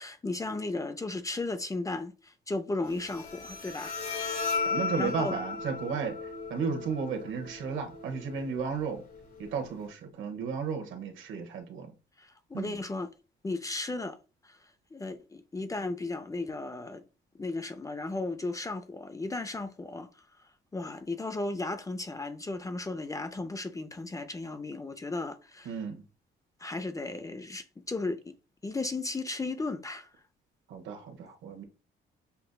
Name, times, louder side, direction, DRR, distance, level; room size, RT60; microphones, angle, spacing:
voice 1, 0.0-4.1 4.5-5.4 12.2-13.1 13.4-14.2 14.4-17.0 17.3-25.8 26.6-28.4 28.6-30.1, left 2 dB, 15° left, 0.4 m, -35 dB
Bowed string instrument, 2.8-9.8, left 4 dB, 50° left, 1.7 m, -36 dB
voice 2, 4.6-9.0 9.4-11.9 12.5-12.8 25.6-26.0 30.7-31.6, right 5 dB, 80° right, 1.0 m, -34 dB
6.7 x 2.5 x 2.2 m
cardioid pair, 90°, 20 cm